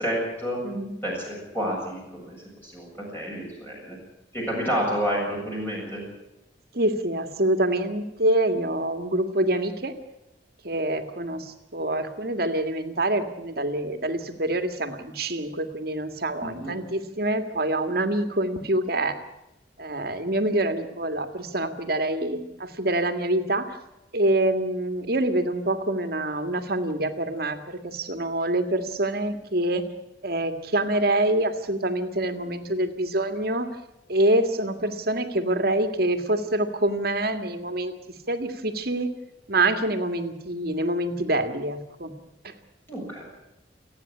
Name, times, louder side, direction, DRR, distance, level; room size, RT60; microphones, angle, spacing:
voice 1, 0.0-0.6 1.0-2.4 2.6-4.0 4.3-6.0 16.4-16.7 42.9-43.2, equal, 10° left, -3 dB, 7.4 m, -29 dB
voice 2, 6.7-9.9 10.6-19.2 19.8-23.8 24.1-29.8 30.2-33.7 34.1-37.9 38.3-39.1 39.5-42.1 42.4-42.5, right 1 dB, 55° right, 8 dB, 1.9 m, -26 dB
29.0 x 9.8 x 9.9 m, 0.91 s
head